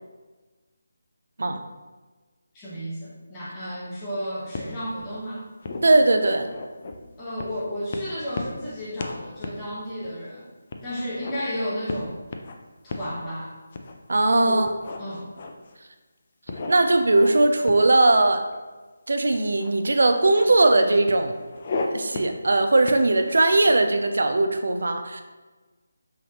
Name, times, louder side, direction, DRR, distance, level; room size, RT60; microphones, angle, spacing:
voice 1, 2.5-5.5 7.2-10.5 10.8-12.2 12.8-13.5 14.4-14.7 15.0-15.3, equal, 15° left, -8 dB, 1.1 m, -32 dB
sound 1, 4.5-5.2 5.6-7.0 7.4-7.6 7.9-8.7 9.0-9.2 9.4-9.6 10.0-10.1 10.7-11.4 11.9-12.5 12.9-13.1 13.7-14.2 14.6-15.8 16.5-17.4 17.6-18.5 19.5-19.7 20.0-20.5 21.1-21.9 22.1-22.4 22.8-23.9, left 3 dB, 40° left, 0.4 m, -34 dB
voice 2, 5.8-6.5 14.1-14.7 16.7-18.4 19.1-21.3 21.9-25.2, right 2 dB, 70° right, 7 dB, 0.4 m, -19 dB
5.6 x 3.1 x 2.9 m, 1.3 s
figure-of-eight pair, 165°, 0 cm